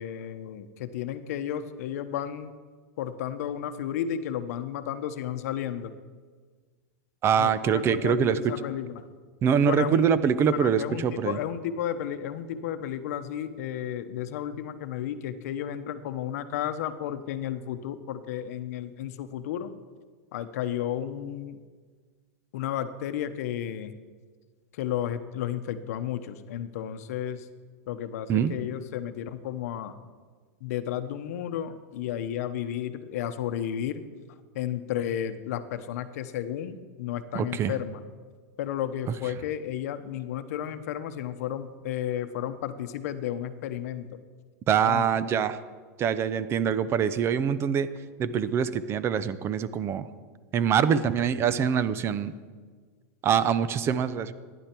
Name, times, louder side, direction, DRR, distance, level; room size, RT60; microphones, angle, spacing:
voice 1, 0.0-2.5 3.0-5.9 7.3-9.1 9.6-10.1 10.5-19.7 20.3-21.6 22.5-24.0 24.7-27.5 27.9-30.0 30.6-34.0 34.5-38.0 38.6-44.2 44.9-45.0, left 10 dB, 70° left, 11 dB, 0.8 m, -33 dB
voice 2, 7.2-8.5 9.4-11.4 28.3-28.5 37.3-37.7 44.7-45.6 46.0-47.9 48.2-50.1 50.5-52.3 53.2-54.3, right 8 dB, 30° right, 15 dB, 0.6 m, -24 dB
15.0 x 10.0 x 4.5 m, 1.5 s
supercardioid pair, 130°, 9 cm